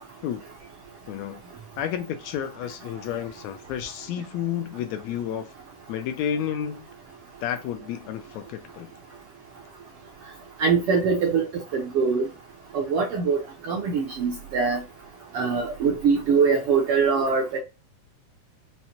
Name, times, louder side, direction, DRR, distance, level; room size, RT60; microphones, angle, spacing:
voice 1, 1.1-1.4 1.8-5.5 5.9-6.9 7.4-8.9, left 9 dB, 80° left, 1.7 m, -31 dB
voice 2, 10.6-12.3 12.7-14.8 15.3-17.6, right 5 dB, 70° right, 1.4 m, -23 dB
5.5 x 2.1 x 2.8 m
omnidirectional pair, 3.4 m